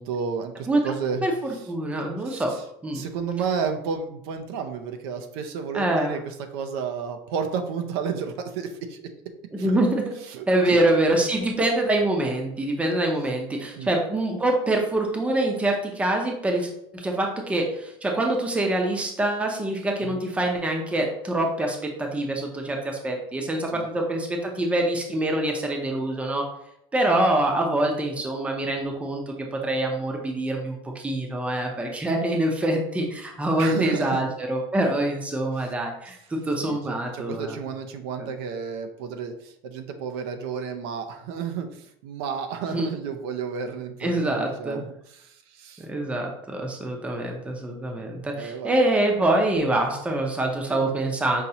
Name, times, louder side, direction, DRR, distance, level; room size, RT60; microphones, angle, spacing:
voice 1, 0.0-1.2 2.3-2.6 2.9-9.1 9.6-9.8 10.3-10.4 10.7-10.8 13.8-13.9 20.0-20.2 23.7-24.1 33.6-34.2 36.6-44.9 45.2-45.9 48.4-48.7 50.7-50.9, right 6 dB, 75° right, 6 dB, 0.6 m, -32 dB
voice 2, 1.2-2.5 2.8-3.0 5.7-6.2 9.5-10.1 10.5-26.5 26.9-37.6 38.2-38.3 42.7-42.9 44.0-44.8 45.8-51.4, right 1 dB, 10° right, 2 dB, 0.6 m, -25 dB
5.5 x 2.9 x 2.8 m, 0.75 s
cardioid pair, 150°, 13 cm